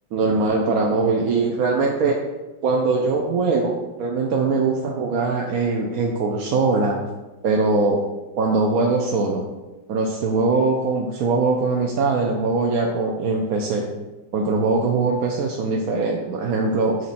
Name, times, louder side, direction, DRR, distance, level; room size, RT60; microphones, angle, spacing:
voice 1, 0.1-2.2 2.6-7.0 7.4-8.0 8.4-9.4 9.9-13.9 14.3-17.0, right 3 dB, 60° right, 0 dB, 1.0 m, -21 dB
8.5 x 4.6 x 4.2 m, 1.1 s
omnidirectional pair, 2.2 m